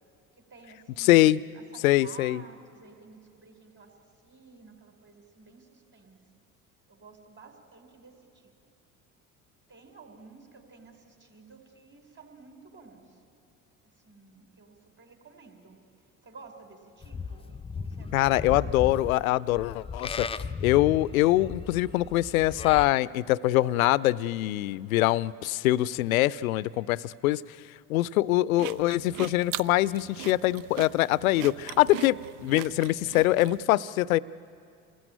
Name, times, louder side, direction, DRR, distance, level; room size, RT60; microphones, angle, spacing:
voice 1, 0.4-6.4 6.9-8.5 9.7-13.2 13.8-15.8 16.2-18.5, right 4 dB, 25° right, 5 dB, 4.5 m, -52 dB
voice 2, 1.0-1.4 1.8-2.4 18.1-20.3 20.6-27.4 27.9-32.2 32.4-34.2, left 16 dB, 75° left, 21 dB, 0.6 m, -24 dB
Livestock farm animals working animals, 17.0-22.9, left 5 dB, 15° left, 0.6 m, -36 dB
sound 1, 28.6-33.6, right 15 dB, 55° right, 0.6 m, -40 dB
27.5 x 19.5 x 9.2 m, 2.4 s
figure-of-eight pair, 55°, 42 cm